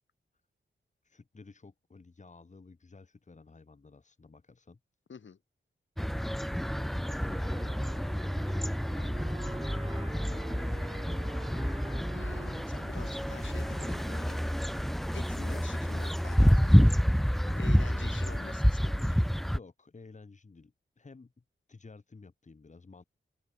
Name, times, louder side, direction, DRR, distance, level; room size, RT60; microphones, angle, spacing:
voice 1, 1.0-4.8 6.8-7.8 8.1-9.3 10.1-11.6 17.4-18.3 19.5-21.3 21.7-23.0, left 4 dB, 35° left, 3.5 m, -53 dB
sound 1, 6.0-19.6, equal, ahead, 0.9 m, -28 dB
Wind instrument woodwind instrument, 7.1-15.5, right 3 dB, 25° right, 1.5 m, -48 dB
voice 2, 12.1-16.9 17.6-19.3, left 6 dB, 65° left, 6.0 m, -48 dB
open air
wide cardioid pair, 115°, 21 cm